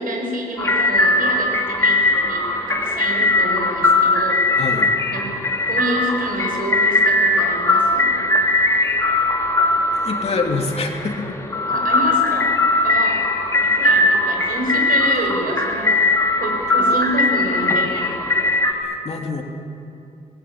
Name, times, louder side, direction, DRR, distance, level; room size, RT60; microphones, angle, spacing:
voice 1, 0.0-4.4 5.1-5.3 5.6-8.2 11.7-12.6 12.8-13.3 13.6-16.0 16.4-18.2, right 1 dB, 70° right, 1 dB, 6.4 m, -28 dB
sound 1, 0.6-18.7, left 2 dB, 20° left, 2.5 m, -19 dB
voice 2, 4.6-4.9 10.0-11.4 18.7-19.4, left 3 dB, 45° left, 2 dB, 3.1 m, -26 dB
27.0 x 20.0 x 8.8 m, 2.6 s
wide cardioid pair, 125°, 15 cm